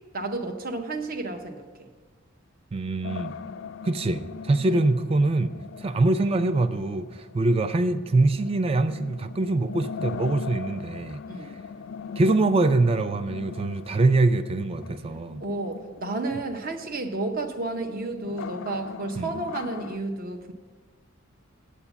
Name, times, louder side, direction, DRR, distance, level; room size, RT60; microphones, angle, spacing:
voice 1, 0.1-1.9 4.1-4.2 4.7-4.8 11.3-11.5 15.4-20.5, right 2 dB, 45° right, 6 dB, 0.7 m, -32 dB
voice 2, 2.7-3.3 3.8-5.5 5.8-11.5 12.2-15.4 19.2-19.3, right 2 dB, 25° right, 12 dB, 0.3 m, -24 dB
sound 1, 3.0-20.0, left 6 dB, 60° left, 0.3 m, -41 dB
8.6 x 8.0 x 7.0 m, 1.4 s
head